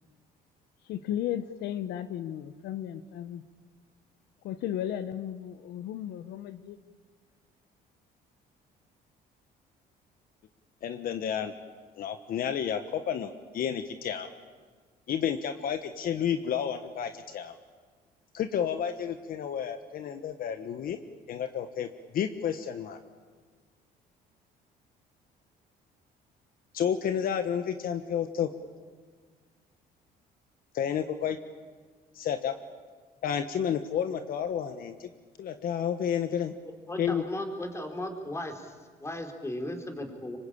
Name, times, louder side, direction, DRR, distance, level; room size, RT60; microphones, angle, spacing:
voice 1, 0.8-3.4 4.4-6.8, left 11 dB, 80° left, 11 dB, 1.1 m, -35 dB
voice 2, 10.8-11.5 12.0-14.3 15.1-17.5 18.3-21.0 21.3-21.9 22.1-23.0 26.7-28.5 30.7-31.4 32.1-32.5 33.2-35.1 35.4-36.5 37.0-37.2, left 8 dB, 60° left, 8 dB, 1.4 m, -31 dB
voice 3, 36.9-38.7 39.0-40.4, left 1 dB, 15° left, 5 dB, 3.9 m, -36 dB
26.0 x 24.5 x 8.7 m, 1.5 s
cardioid pair, 110°, 17 cm